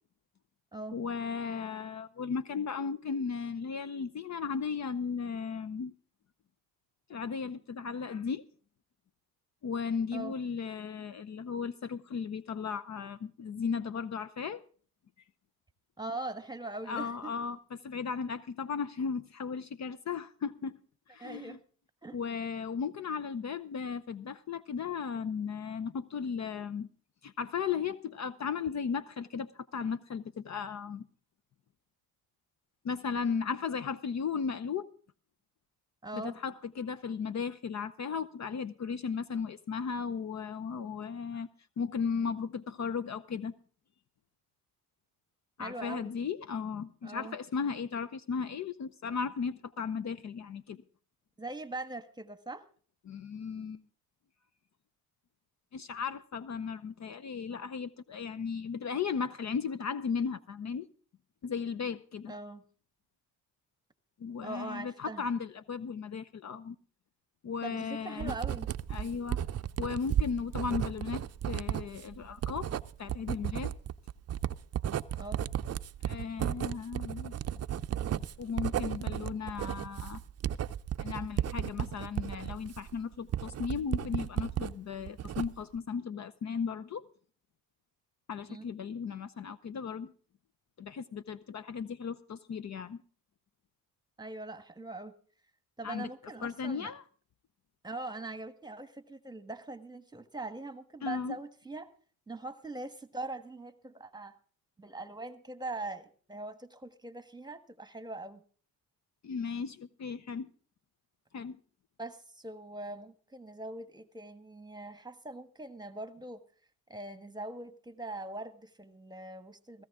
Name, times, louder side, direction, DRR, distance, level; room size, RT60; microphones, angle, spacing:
voice 1, 0.9-5.9 7.1-8.4 9.6-14.6 16.9-20.8 21.1-21.6 22.1-26.9 27.2-31.1 32.8-34.9 36.1-41.5 41.8-43.5 45.6-50.8 53.1-53.8 55.7-60.9 61.4-62.3 64.2-66.8 67.4-68.3 68.9-69.5 69.8-73.7 76.0-77.3 78.4-80.2 81.0-87.0 88.3-90.1 90.8-93.0 95.8-96.1 96.4-97.0 101.0-101.4 109.2-110.5 111.3-111.6, left 6 dB, 45° left, 0.7 m, -36 dB
voice 2, 16.0-17.3 21.2-21.6 22.0-22.2 36.0-36.4 45.6-46.1 47.0-47.4 51.4-52.7 62.3-62.6 64.4-65.2 67.6-68.7 75.1-75.4 88.5-88.6 94.2-95.1 95.8-96.9 97.8-101.9 102.3-104.4 104.8-108.4 112.0-116.4 116.9-119.8, right 2 dB, 10° right, 1.4 m, -42 dB
Writing, 68.2-84.7 85.1-85.8, right 10 dB, 40° right, 0.6 m, -34 dB
16.5 x 15.0 x 3.6 m
cardioid pair, 85°, 39 cm